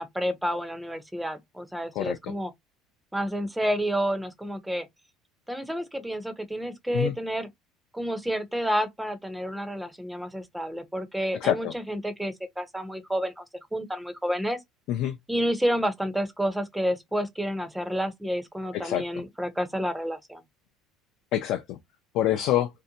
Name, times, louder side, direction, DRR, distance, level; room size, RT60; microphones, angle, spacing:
voice 1, 0.0-2.5 3.1-4.9 5.5-7.5 7.9-13.4 13.7-14.6 15.3-20.4, equal, 5° right, 0.5 m, -30 dB
voice 2, 11.4-11.7 14.9-15.1 18.7-19.0 21.3-21.8 22.1-22.7, left 12 dB, 60° left, 0.4 m, -26 dB
2.6 x 2.1 x 2.7 m
cardioid pair, 145°, 0 cm